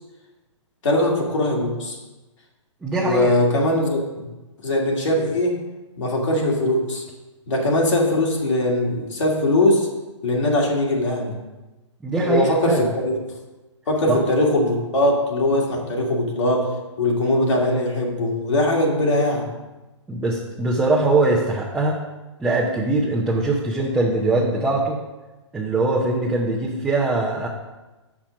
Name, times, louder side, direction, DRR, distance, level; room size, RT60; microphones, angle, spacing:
voice 1, 0.8-2.0 3.0-4.3 4.6-5.6 6.0-7.0 7.5-9.9 10.2-11.3 12.1-13.1 13.9-16.7 17.0-19.5, left 1 dB, 70° left, -2 dB, 2.3 m, -21 dB
voice 2, 2.8-3.3 12.0-12.9 14.1-14.2 20.1-22.0 22.4-25.0 25.5-27.5, right 2 dB, 5° right, -5 dB, 0.8 m, -22 dB
7.0 x 6.1 x 5.1 m, 1.1 s
hypercardioid pair, 140°, 16 cm